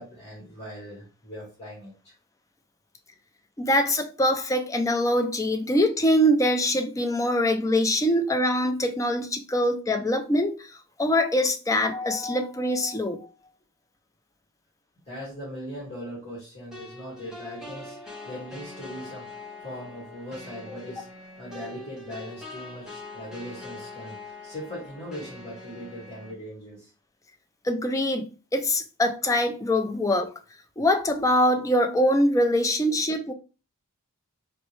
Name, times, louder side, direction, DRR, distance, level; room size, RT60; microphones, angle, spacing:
voice 1, 0.0-2.1 15.1-19.3 19.6-21.1 21.4-26.9, equal, 30° left, 2.0 m, -40 dB
voice 2, 3.6-13.3 27.6-30.3 30.8-33.3, left 1 dB, 15° left, 0.4 m, -23 dB
sound 1, 16.7-26.3, left 2 dB, 5° right, 1.1 m, -43 dB
4.2 x 3.1 x 3.2 m
head